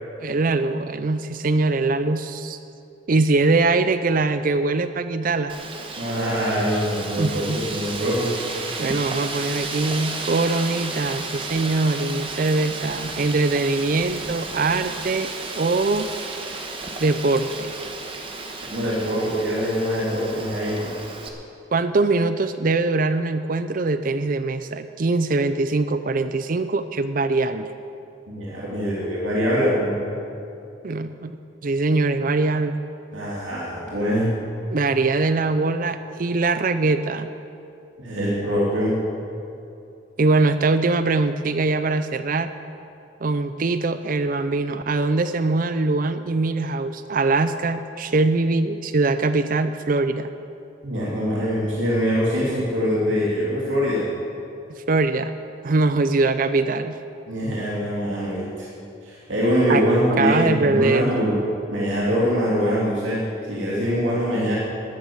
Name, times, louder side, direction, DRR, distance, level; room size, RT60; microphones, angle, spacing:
voice 1, 0.2-2.6 3.1-5.5 7.2-7.6 8.8-16.1 17.0-17.7 21.7-27.7 30.8-31.3 31.6-32.8 34.7-37.3 40.2-42.5 43.2-50.3 54.7-55.3 55.6-57.0 59.7-59.8 60.2-61.1, right 3 dB, 45° right, 11 dB, 0.5 m, -22 dB
Wind, 5.5-21.3, right 3 dB, 25° right, 1.2 m, -33 dB
voice 2, 6.0-8.4 18.7-20.9 28.3-30.1 33.1-34.4 38.0-39.0 50.8-54.1 57.3-58.7 59.0-61.4 61.7-64.5, equal, 75° right, -6 dB, 2.8 m, -23 dB
13.5 x 10.5 x 7.2 m, 2.7 s
head